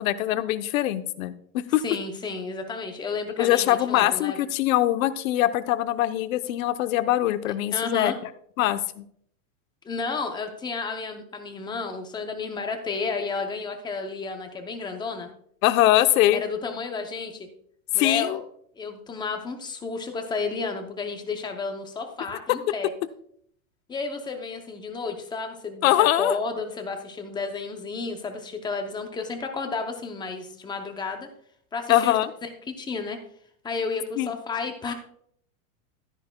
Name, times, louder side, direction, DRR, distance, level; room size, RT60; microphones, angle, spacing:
voice 1, 0.0-1.8 3.4-8.1 8.6-9.0 15.6-16.4 17.9-18.4 25.8-26.4 31.9-32.3 34.2-34.3, left 14 dB, 70° left, 11 dB, 0.8 m, -22 dB
voice 2, 1.8-4.4 7.7-8.2 9.8-15.3 16.3-17.5 17.9-18.4 18.8-22.9 23.9-31.3 31.7-32.5 32.8-33.2 33.6-34.9, left 4 dB, 10° left, 5 dB, 0.5 m, -32 dB
12.5 x 10.0 x 2.2 m, 0.66 s
supercardioid pair, 155°, 42 cm